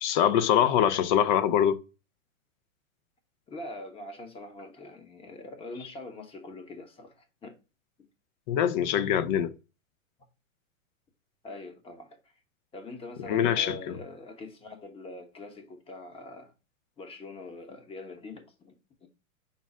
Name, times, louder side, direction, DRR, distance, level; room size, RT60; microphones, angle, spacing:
voice 1, 0.0-1.8 8.5-9.5 13.3-13.9, left 9 dB, 35° left, 0.4 m, -24 dB
voice 2, 3.5-7.6 11.4-12.2 12.7-16.5 17.0-18.7 19.0-19.1, left 2 dB, 15° left, 0.9 m, -43 dB
5.4 x 2.1 x 4.6 m
hypercardioid pair, 115°, 41 cm